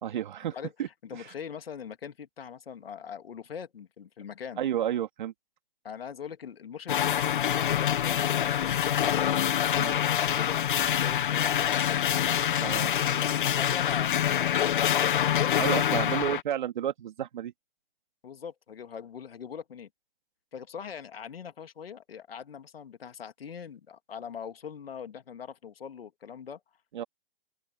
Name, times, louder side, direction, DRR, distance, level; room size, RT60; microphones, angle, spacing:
voice 1, 0.0-1.3 4.6-5.3 9.7-10.0 12.6-12.9 15.6-17.5 26.9-27.0, right 10 dB, 50° right, 2.4 m, -31 dB
voice 2, 1.0-4.6 5.8-9.3 10.0-16.2 18.2-19.9 20.5-26.6, left 7 dB, 75° left, 2.2 m, -42 dB
sound 1, 6.9-16.4, left 10 dB, 55° left, 0.7 m, -26 dB
open air
hypercardioid pair, 160°, 30 cm